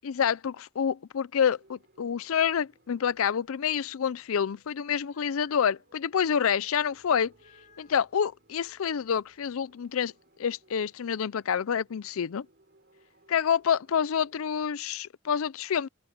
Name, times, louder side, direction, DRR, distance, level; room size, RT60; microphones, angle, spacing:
voice 1, 0.0-7.3 7.8-10.1 10.4-12.5 13.3-15.9, left 7 dB, 80° left, 0.4 m, -28 dB
sound 1, 1.5-14.7, right 1 dB, 50° right, 5.5 m, -64 dB
sound 2, 4.8-5.9 7.3-8.2 11.1-11.8, left 6 dB, 35° left, 6.9 m, -62 dB
open air
head